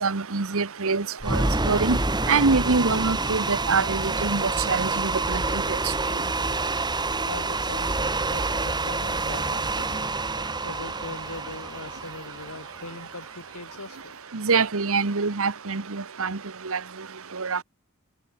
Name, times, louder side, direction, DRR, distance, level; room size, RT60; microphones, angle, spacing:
voice 1, 0.0-2.0 2.3-5.4 14.3-16.4 16.7-16.8 17.4-17.6, right 4 dB, 65° right, 1.2 m, -25 dB
sound 1, 1.2-13.4, right 3 dB, 20° right, 2.1 m, -27 dB
voice 2, 7.2-10.2 10.6-14.1, left 2 dB, 75° left, 4.9 m, -41 dB
head